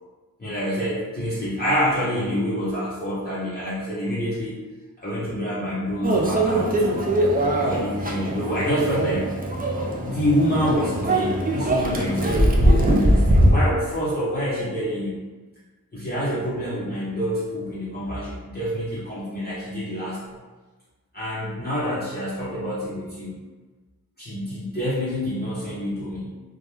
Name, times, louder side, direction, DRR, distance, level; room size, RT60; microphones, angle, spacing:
voice 1, 0.4-4.5 5.0-7.1 7.5-9.3 10.0-15.2 15.9-20.4 21.1-23.3 24.2-26.3, equal, 25° left, -10 dB, 0.6 m, -27 dB
Microwave oven, 6.0-13.5, right 1 dB, 25° right, 0.3 m, -21 dB
2.2 x 2.1 x 3.1 m, 1.3 s
wide cardioid pair, 75°, 38 cm